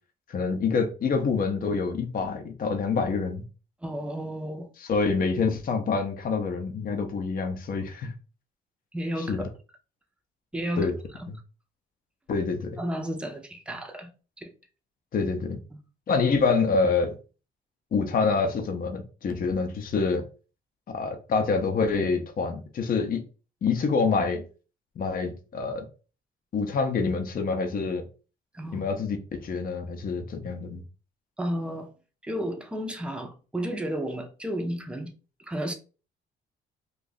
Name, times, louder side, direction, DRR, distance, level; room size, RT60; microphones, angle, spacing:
voice 1, 0.3-3.4 4.8-8.1 9.3-9.5 10.8-10.9 11.3-11.4 12.3-12.8 15.1-15.6 16.1-17.1 17.9-20.2 20.9-23.2 23.6-24.4 25.0-25.9 26.5-28.0 28.7-30.8, left 4 dB, 45° left, 0.7 m, -26 dB
voice 2, 3.8-4.7 8.9-9.5 10.5-10.9 11.2-11.3 12.8-14.1 14.4-14.5 15.7-15.8 28.5-28.8 31.4-31.9 32.2-35.1 35.4-35.7, equal, 5° right, 0.6 m, -32 dB
2.6 x 2.4 x 3.8 m
cardioid pair, 90°, 20 cm